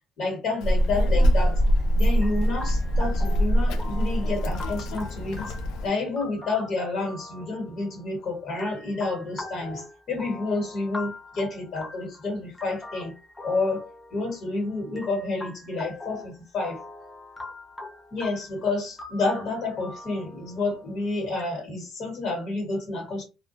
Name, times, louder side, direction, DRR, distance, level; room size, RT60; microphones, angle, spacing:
voice 1, 0.2-1.6 1.9-5.4 5.8-13.1 13.4-16.8 18.1-23.2, left 3 dB, 40° left, 1.4 m, -29 dB
Child speech kid speaking, 0.6-5.9, equal, 80° left, 0.4 m, -23 dB
sound 1, 2.2-21.4, left 2 dB, 10° left, 0.4 m, -42 dB
2.3 x 2.1 x 2.6 m
cardioid pair, 170°, 0 cm